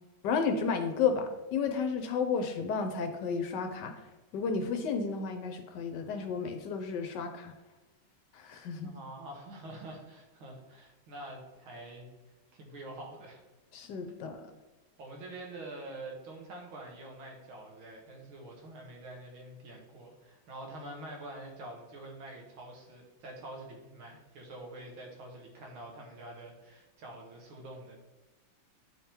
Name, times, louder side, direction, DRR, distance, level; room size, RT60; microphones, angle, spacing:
voice 1, 0.2-3.9 4.3-7.5 8.3-8.9 13.7-14.4, left 5 dB, 70° left, 6 dB, 1.2 m, -32 dB
voice 2, 8.8-12.1 12.5-13.4 15.0-28.0, right 1 dB, 90° right, 0 dB, 2.2 m, -46 dB
9.3 x 3.6 x 4.3 m, 1.2 s
omnidirectional pair, 2.2 m